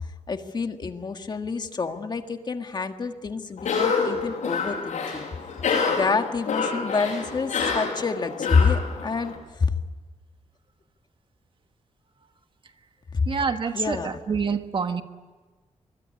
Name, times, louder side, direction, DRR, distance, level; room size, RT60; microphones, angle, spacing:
voice 1, 0.3-5.3 5.9-9.8 13.1-13.3 13.7-14.2, left 4 dB, 40° left, 6 dB, 1.6 m, -27 dB
Cough, 3.6-9.4, left 5 dB, 90° left, 7.7 m, -28 dB
voice 2, 13.3-15.0, right 5 dB, 45° right, 8 dB, 1.4 m, -27 dB
25.0 x 21.5 x 9.8 m, 1.3 s
wide cardioid pair, 145°, 12 cm